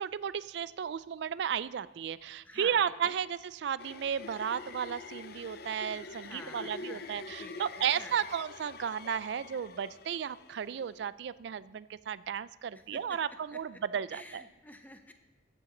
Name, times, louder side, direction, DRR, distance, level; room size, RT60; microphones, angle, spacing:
voice 1, 0.0-14.4, right 8 dB, 65° right, 18 dB, 0.3 m, -34 dB
voice 2, 2.4-3.1 6.2-7.0 7.4-8.2 12.7-13.2 13.5-13.8 14.1-15.1, left 1 dB, 10° left, 6 dB, 0.7 m, -50 dB
sound 1, 3.8-11.1, left 4 dB, 55° left, 0.5 m, -46 dB
15.0 x 8.8 x 3.8 m, 1.1 s
head